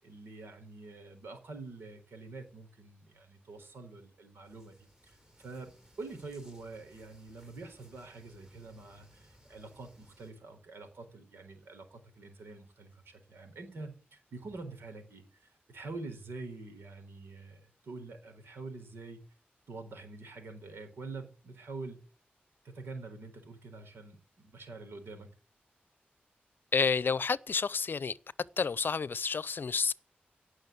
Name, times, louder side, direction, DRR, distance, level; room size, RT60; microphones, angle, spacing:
voice 1, 0.0-4.7 5.0-5.7 6.0-19.2 19.7-22.0 22.6-25.3, right 3 dB, 90° right, 4.2 m, -46 dB
sound 1, 4.4-10.3, equal, 15° right, 3.9 m, -62 dB
voice 2, 26.7-28.1 28.6-29.9, left 5 dB, 60° left, 0.6 m, -29 dB
17.5 x 6.4 x 8.2 m
cardioid pair, 70°, 4 cm